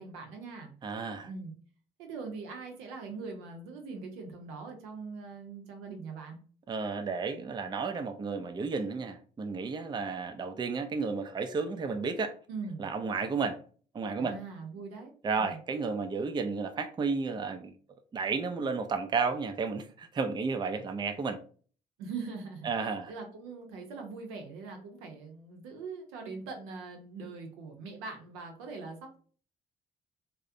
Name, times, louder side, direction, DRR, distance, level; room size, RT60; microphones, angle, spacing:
voice 1, 0.0-0.7 1.2-1.5 2.0-6.4 12.5-12.8 14.2-15.1 15.4-15.6 22.0-29.2, right 4 dB, 80° right, 0.6 m, -42 dB
voice 2, 0.8-1.3 6.7-12.3 12.8-13.6 13.9-14.3 15.2-17.7 18.1-21.4 22.6-23.1, right 4 dB, 20° right, 0.4 m, -32 dB
2.4 x 2.0 x 2.5 m
hypercardioid pair, 45°, 21 cm